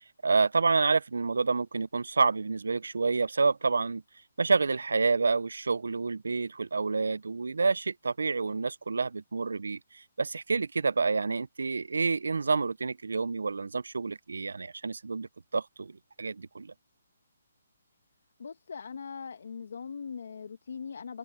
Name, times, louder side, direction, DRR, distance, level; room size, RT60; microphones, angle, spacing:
voice 1, 0.0-4.0 4.4-16.7, right 4 dB, 85° right, 0.5 m, -28 dB
voice 2, 18.4-21.2, left 6 dB, 65° left, 1.5 m, -40 dB
hypercardioid pair, 160°, 0 cm